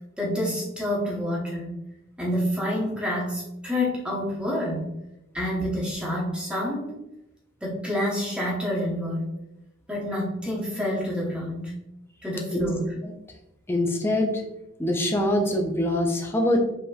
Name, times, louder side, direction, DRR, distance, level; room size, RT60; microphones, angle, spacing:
voice 1, 0.2-1.8 2.2-4.9 5.3-7.0 7.6-9.3 9.9-11.7 12.2-12.8, left 1 dB, 5° right, -4 dB, 1.0 m, -28 dB
voice 2, 13.7-14.4 14.8-16.6, left 1 dB, 10° left, 1 dB, 0.5 m, -24 dB
5.3 x 2.9 x 2.4 m, 0.90 s
head